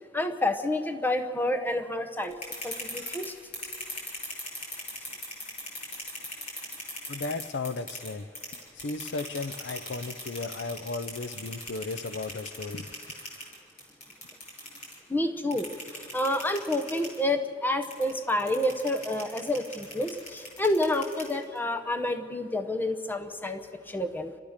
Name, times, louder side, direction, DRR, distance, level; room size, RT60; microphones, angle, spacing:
voice 1, 0.1-2.3 2.6-3.3 15.1-15.7 16.1-24.3, left 1 dB, 10° left, 7 dB, 0.9 m, -29 dB
sound 1, 2.2-8.1 8.4-15.0 15.5-17.2 17.8-21.6, left 1 dB, 45° left, 6.7 m, -38 dB
voice 2, 7.1-8.3 8.8-12.9, left 3 dB, 75° left, 12 dB, 0.6 m, -35 dB
30.0 x 13.5 x 6.6 m, 2.3 s
head